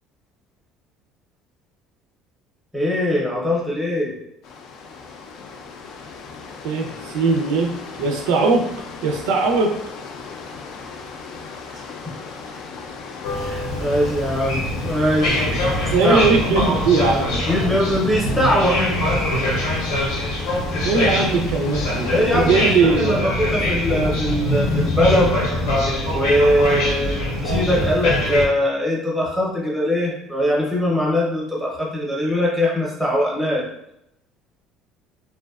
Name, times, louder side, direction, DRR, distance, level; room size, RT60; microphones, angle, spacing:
voice 1, 2.7-4.1 11.7-11.8 13.3-15.4 16.0-16.2 17.5-18.8 22.1-25.3 26.1-33.6, equal, ahead, -4 dB, 0.6 m, -21 dB
sound 1, 4.4-22.8, left 4 dB, 60° left, 0.3 m, -37 dB
voice 2, 6.6-7.7 8.0-8.7 9.0-9.7 15.9-17.4 20.8-23.1, right 4 dB, 90° right, 3 dB, 0.4 m, -19 dB
sound 2, 13.2-28.5, left 1 dB, 80° left, 0.7 m, -23 dB
2.5 x 2.1 x 2.3 m, 0.81 s
cardioid pair, 145°, 0 cm